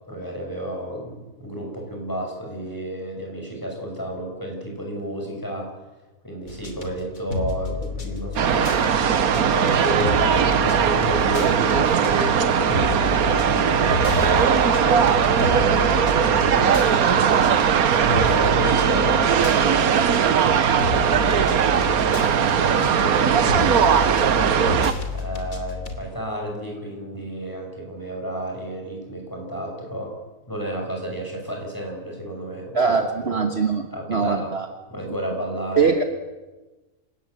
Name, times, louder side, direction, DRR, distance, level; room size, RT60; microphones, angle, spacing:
voice 1, 0.1-5.7 6.2-8.8 9.3-10.3 10.6-16.1 16.5-20.5 20.8-24.6 25.1-30.2 30.5-33.4 33.9-34.6 34.9-35.9, equal, 10° left, 0 dB, 6.3 m, -31 dB
sound 1, 6.5-26.0, left 4 dB, 60° left, 3.2 m, -31 dB
sound 2, 8.4-24.9, right 7 dB, 70° right, 1.5 m, -19 dB
voice 2, 32.7-34.7 35.8-36.0, right 5 dB, 45° right, 5 dB, 1.6 m, -22 dB
27.5 x 18.0 x 7.9 m, 1.2 s
omnidirectional pair, 1.6 m